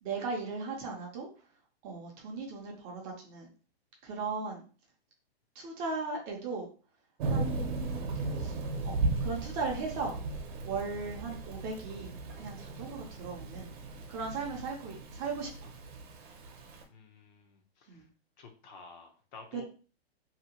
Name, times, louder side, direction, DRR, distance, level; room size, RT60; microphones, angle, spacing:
voice 1, 0.0-1.5 1.8-3.5 4.0-4.7 5.5-6.7 7.2-8.1 8.3-8.6 8.8-10.2 10.6-13.7 14.1-15.5 17.9-18.1 19.5-19.6, right 4 dB, 25° right, -1 dB, 0.6 m, -37 dB
Thunder / Rain, 7.2-16.8, right 3 dB, 50° right, 0.9 m, -36 dB
voice 2, 16.9-18.1 18.4-19.7, left 4 dB, 45° left, 4 dB, 0.7 m, -52 dB
2.8 x 2.7 x 2.8 m, 0.37 s
hypercardioid pair, 145°, 32 cm